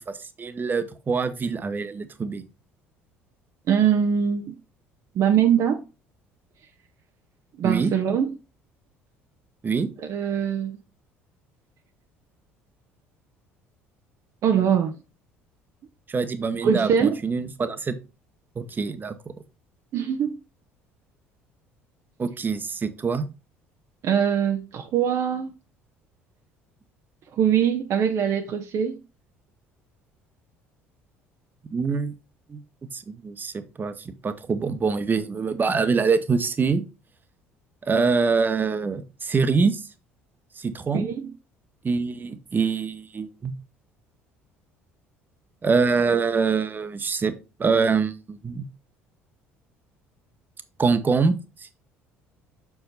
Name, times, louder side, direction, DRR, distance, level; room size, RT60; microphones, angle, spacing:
voice 1, 0.1-2.4 7.6-7.9 9.6-9.9 16.1-17.9 18.6-19.2 22.2-23.3 31.7-32.1 32.5-32.6 32.9-36.8 37.8-39.8 40.6-41.1 41.8-43.6 45.6-47.3 47.6-48.6 50.8-51.7, right 5 dB, 30° right, 0.9 m, -24 dB
voice 2, 3.7-4.6 5.1-5.8 7.6-8.3 10.0-10.8 14.4-15.0 16.6-17.2 19.9-20.4 24.0-25.5 27.4-29.0 40.9-41.3, right 8 dB, 50° right, 0.7 m, -22 dB
6.4 x 4.8 x 4.0 m
figure-of-eight pair, 60°, 7 cm